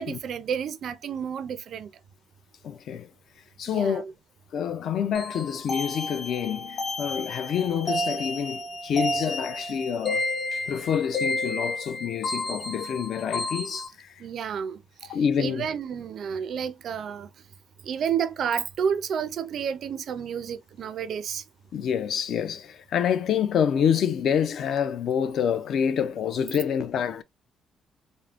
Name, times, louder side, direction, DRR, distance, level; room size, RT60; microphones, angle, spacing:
voice 1, 0.0-1.9 3.7-4.1 14.2-14.8 15.4-17.3 17.8-21.4, right 7 dB, 50° right, 0.4 m, -30 dB
voice 2, 2.6-3.1 3.6-4.0 4.5-10.2 10.5-14.1 15.1-15.7 21.7-27.2, left 8 dB, 55° left, 0.4 m, -27 dB
sound 1, 5.1-13.9, left 2 dB, 35° left, 1.0 m, -31 dB
3.5 x 2.0 x 2.4 m
cardioid pair, 160°, 0 cm